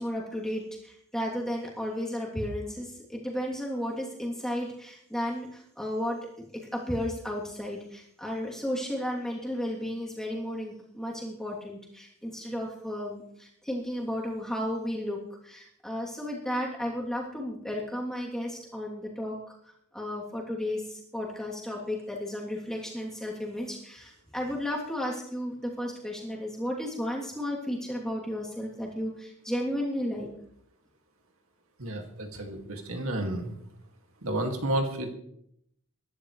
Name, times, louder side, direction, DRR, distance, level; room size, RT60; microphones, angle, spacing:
voice 1, 0.0-6.2 6.7-19.4 19.9-30.3, left 1 dB, ahead, -3 dB, 3.0 m, -33 dB
voice 2, 31.8-33.5 34.2-35.1, right 1 dB, 75° right, 4 dB, 2.3 m, -31 dB
21.5 x 11.5 x 3.3 m, 0.73 s
head